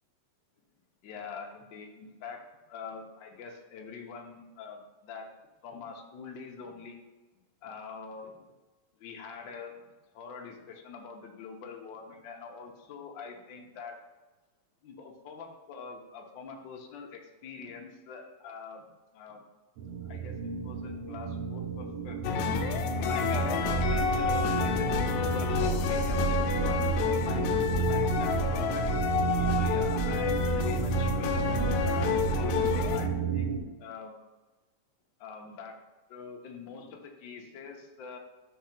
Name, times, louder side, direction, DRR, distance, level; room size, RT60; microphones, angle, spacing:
voice 1, 1.0-2.4 2.7-5.3 5.6-7.0 7.6-8.4 9.0-9.7 10.1-14.0 14.8-18.9 19.1-19.4 20.1-20.3 20.6-22.2 23.1-28.8 29.5-34.1 35.2-35.8 36.1-38.2, left 5 dB, 75° left, 1 dB, 1.0 m, -44 dB
sound 1, 19.8-33.6, right 8 dB, 70° right, 1.6 m, -32 dB
sound 2, 22.2-33.1, left 8 dB, 90° left, 2.0 m, -30 dB
sound 3, 23.6-33.1, right 2 dB, 45° right, 1.7 m, -34 dB
5.9 x 3.7 x 5.8 m, 1.2 s
omnidirectional pair, 3.3 m